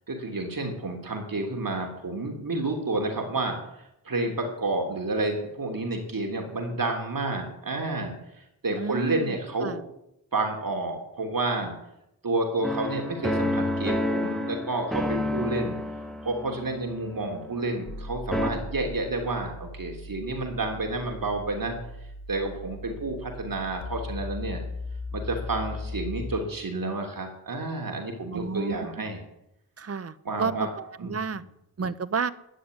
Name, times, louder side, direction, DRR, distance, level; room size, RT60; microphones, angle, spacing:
voice 1, 0.1-3.6 4.0-8.2 8.6-9.8 10.3-11.7 12.2-15.8 16.2-21.7 22.3-24.6 25.1-29.2 30.2-30.7 31.0-31.2, right 2 dB, 60° right, 2 dB, 3.2 m, -30 dB
voice 2, 8.7-9.3 9.6-9.8 28.3-28.8 29.8-31.4 31.8-32.3, right 5 dB, 40° right, 14 dB, 0.8 m, -31 dB
sound 1, 12.6-18.0 18.3-18.5, left 1 dB, ahead, 1.5 m, -30 dB
sound 2, 17.8-26.4, left 2 dB, 65° left, 1.8 m, -38 dB
12.5 x 9.6 x 9.6 m, 0.84 s
wide cardioid pair, 115°, 38 cm